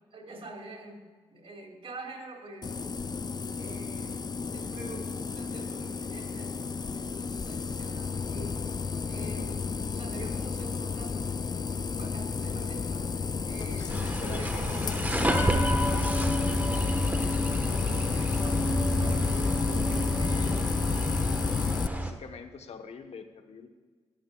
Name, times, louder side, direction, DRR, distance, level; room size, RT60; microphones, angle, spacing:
voice 1, 0.1-1.0 1.3-2.8 3.6-8.6 9.1-11.3 12.0-16.3 16.8-21.4, right 2 dB, 60° right, 2 dB, 2.6 m, -46 dB
sound 1, 2.6-21.9, left 5 dB, 40° left, 0.5 m, -31 dB
voice 2, 13.6-15.0 21.8-23.7, left 5 dB, 75° left, 6 dB, 1.1 m, -45 dB
sound 2, 13.9-22.1, right 1 dB, 15° right, 1.3 m, -30 dB
17.5 x 10.0 x 2.4 m, 1.4 s
cardioid pair, 55°, 11 cm